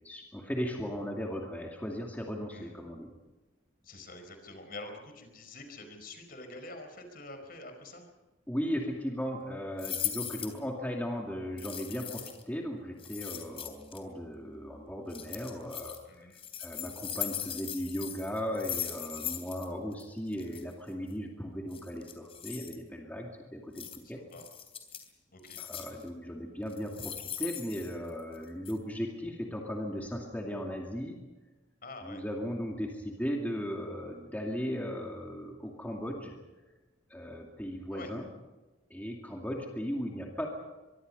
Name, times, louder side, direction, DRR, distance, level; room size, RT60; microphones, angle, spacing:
voice 1, 0.0-3.1 8.5-24.2 25.6-31.2 32.0-36.4 37.1-38.3 38.9-40.5, equal, 10° left, 0 dB, 2.4 m, -37 dB
voice 2, 3.8-8.1 16.1-16.3 24.0-24.5 25.3-25.6 31.8-32.2 37.9-38.1, left 2 dB, 50° left, 6 dB, 4.7 m, -46 dB
sound 1, 9.8-10.6 11.6-12.4 13.0-14.0 15.1-16.0 16.3-19.7 19.9-20.0 20.3-20.6 21.7-22.8 23.8-24.0 24.3-25.1 25.4-26.0 26.7-28.4 28.6-28.7, left 10 dB, 30° left, 3.3 m, -39 dB
24.0 x 24.0 x 5.4 m, 1.1 s
head